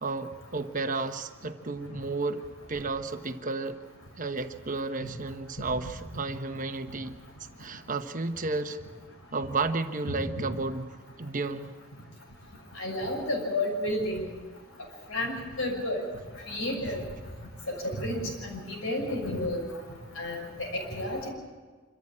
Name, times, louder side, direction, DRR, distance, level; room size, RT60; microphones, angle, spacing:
voice 1, 0.0-2.4 2.7-3.8 4.2-7.2 7.6-8.8 9.3-10.9 11.2-11.7, right 3 dB, 35° right, 7 dB, 1.1 m, -32 dB
voice 2, 12.7-14.2 15.1-16.0 16.5-17.0 17.7-19.7 20.1-21.3, left 1 dB, 70° left, 1 dB, 6.3 m, -31 dB
26.0 x 14.0 x 8.8 m, 1.4 s
head